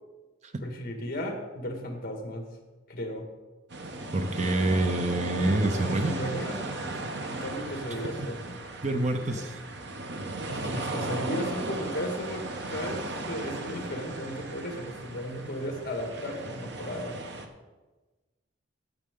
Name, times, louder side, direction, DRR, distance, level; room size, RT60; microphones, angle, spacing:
voice 1, 0.6-2.5 2.9-3.3 5.7-6.7 7.0-8.6 9.3-9.5 10.5-17.2, equal, 50° left, 2 dB, 1.8 m, -35 dB
sound 1, 3.7-17.5, right 2 dB, 60° right, 1.0 m, -36 dB
voice 2, 4.1-6.1 8.2-8.3 8.8-9.5, right 2 dB, 35° right, 7 dB, 0.7 m, -26 dB
15.0 x 6.4 x 3.8 m, 1.2 s
head